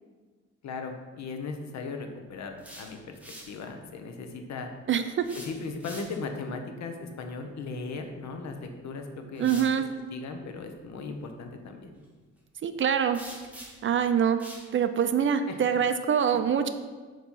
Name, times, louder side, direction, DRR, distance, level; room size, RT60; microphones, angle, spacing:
voice 1, 0.6-3.2 3.5-4.7 5.4-9.8 10.1-11.9 15.2-15.6, left 4 dB, 65° left, 5 dB, 0.8 m, -38 dB
sound 1, 2.4-3.6 5.2-6.4 8.4-8.6 9.4-9.8 13.1-13.9 14.4-14.7, right 1 dB, 5° right, 1.4 m, -45 dB
voice 2, 4.9-5.2 9.4-9.9 12.6-13.2 13.8-14.4 14.7-16.7, right 8 dB, 40° right, 9 dB, 0.4 m, -24 dB
7.1 x 3.0 x 5.4 m, 1.4 s
cardioid pair, 90°, 30 cm